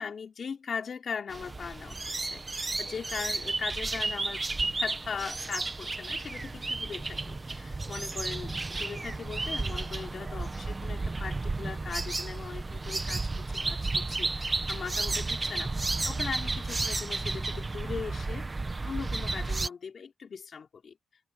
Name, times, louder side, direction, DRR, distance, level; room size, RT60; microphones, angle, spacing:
voice 1, 0.0-18.5 18.8-21.0, left 6 dB, 40° left, 3.9 m, -39 dB
sound 1, 1.3-19.7, right 3 dB, 15° right, 1.0 m, -33 dB
wide cardioid pair, 170°, 0 cm